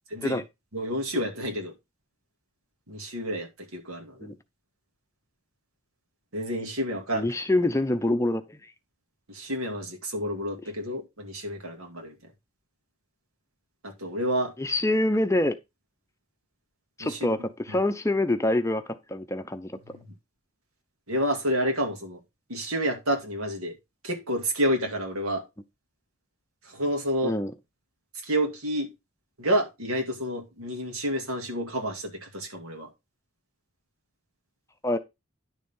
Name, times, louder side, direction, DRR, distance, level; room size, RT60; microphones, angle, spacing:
voice 1, 0.1-0.4 0.7-1.7 2.9-4.3 6.3-7.3 9.3-12.2 13.8-14.5 17.0-17.3 17.7-17.8 19.9-20.0 21.1-22.2 22.5-23.8 24.0-25.4 26.6-27.3 28.2-28.9 29.4-32.9, equal, 80° right, 2.5 m, -29 dB
voice 2, 7.1-8.7 14.6-15.5 17.0-18.8 19.1-19.7 27.2-27.5 34.8-35.0, left 1 dB, 15° left, 0.6 m, -25 dB
10.5 x 6.7 x 3.7 m
head